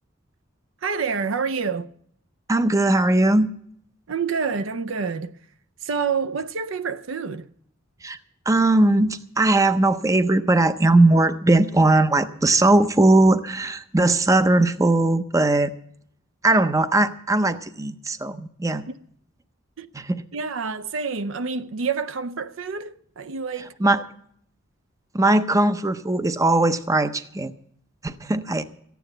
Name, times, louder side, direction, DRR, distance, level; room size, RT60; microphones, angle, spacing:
voice 1, 0.8-1.9 4.1-5.3 5.8-7.5 19.8-19.9 20.3-23.7, right 5 dB, 70° right, 0.6 m, -27 dB
voice 2, 2.5-3.5 8.0-8.2 8.5-15.7 16.4-18.8 19.9-20.2 23.8-24.0 25.1-27.5 28.0-28.6, right 2 dB, 15° right, 0.6 m, -19 dB
14.0 x 9.3 x 7.7 m
head